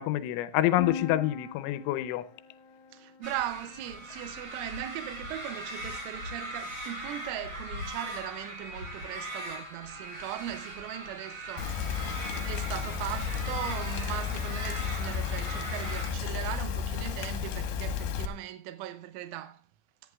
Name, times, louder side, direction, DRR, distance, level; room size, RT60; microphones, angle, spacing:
voice 1, 0.0-2.2, left 14 dB, 85° left, 3.2 m, -27 dB
sound 1, 0.8-4.5, left 6 dB, 45° left, 2.7 m, -42 dB
voice 2, 2.9-12.0 12.3-19.6, right 13 dB, 90° right, 3.1 m, -39 dB
sound 2, 3.2-16.1, right 1 dB, 30° right, 3.6 m, -40 dB
Rain, 11.6-18.3, left 7 dB, 70° left, 2.9 m, -33 dB
18.5 x 11.0 x 2.3 m
omnidirectional pair, 5.4 m